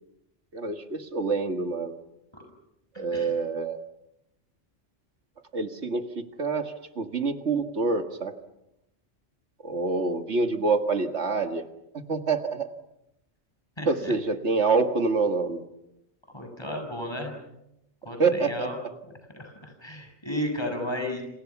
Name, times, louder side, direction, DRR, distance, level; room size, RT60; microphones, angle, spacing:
voice 1, 0.5-1.9 3.0-3.8 5.5-8.3 9.6-11.6 12.1-12.7 13.9-15.6 18.2-18.9, right 4 dB, 85° right, 6 dB, 2.1 m, -26 dB
voice 2, 2.9-3.3 13.8-14.1 16.3-17.3 18.1-18.8 19.0-21.2, left 1 dB, 25° left, 4 dB, 7.2 m, -34 dB
29.0 x 28.0 x 6.0 m, 0.84 s
omnidirectional pair, 1.1 m